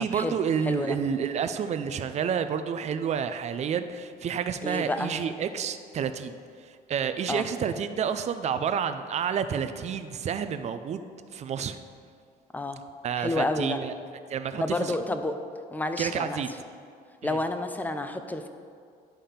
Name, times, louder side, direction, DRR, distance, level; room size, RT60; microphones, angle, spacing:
voice 1, 0.0-11.0 11.3-11.8 13.0-13.9 14.3-15.0 16.0-16.5 17.2-17.4, right 7 dB, 40° right, 10 dB, 0.5 m, -29 dB
voice 2, 0.6-1.0 4.6-5.1 7.3-7.4 12.5-12.8 13.2-13.8 14.6-15.4 15.7-16.4 17.2-18.5, left 2 dB, 10° left, 8 dB, 0.5 m, -29 dB
10.0 x 3.6 x 5.7 m, 2.3 s
cardioid pair, 110°, 17 cm